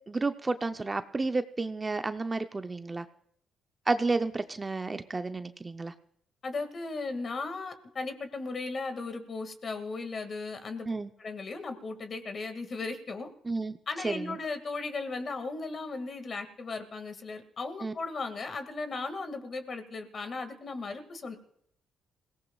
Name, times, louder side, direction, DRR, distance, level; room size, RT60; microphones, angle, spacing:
voice 1, 0.1-3.1 3.9-5.9 10.9-11.1 13.5-13.8 14.0-14.4 17.8-17.9, right 3 dB, 25° right, 8 dB, 0.7 m, -31 dB
voice 2, 6.4-13.3 13.9-21.4, left 3 dB, 45° left, 8 dB, 2.0 m, -36 dB
27.5 x 17.5 x 2.4 m, 0.72 s
cardioid pair, 90°, 0 cm